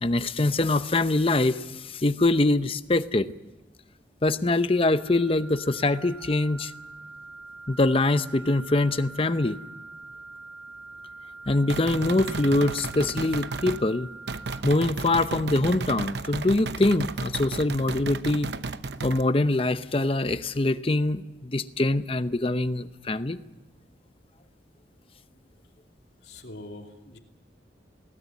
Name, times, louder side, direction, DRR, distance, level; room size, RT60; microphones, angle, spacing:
voice 1, 0.0-3.3 4.2-6.7 7.7-9.6 11.5-14.1 14.6-18.5 19.0-23.4, left 2 dB, 30° left, 12 dB, 0.8 m, -24 dB
sound 1, 4.7-14.6, right 3 dB, 5° right, 1.5 m, -44 dB
sound 2, 11.7-13.8 14.3-19.2, right 3 dB, 75° right, 0.8 m, -33 dB
voice 2, 26.2-27.2, left 2 dB, 70° left, 3 dB, 2.7 m, -43 dB
20.5 x 18.0 x 9.4 m, 1.1 s
head